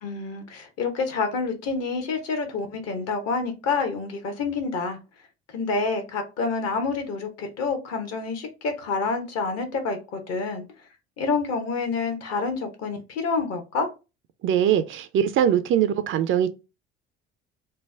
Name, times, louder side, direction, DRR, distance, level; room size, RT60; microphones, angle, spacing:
voice 1, 0.0-5.0 5.5-10.6 11.2-13.9, left 4 dB, 55° left, 1.0 m, -28 dB
voice 2, 14.4-16.5, right 9 dB, 40° right, 0.4 m, -22 dB
3.2 x 2.1 x 3.2 m
hypercardioid pair, 60°, 31 cm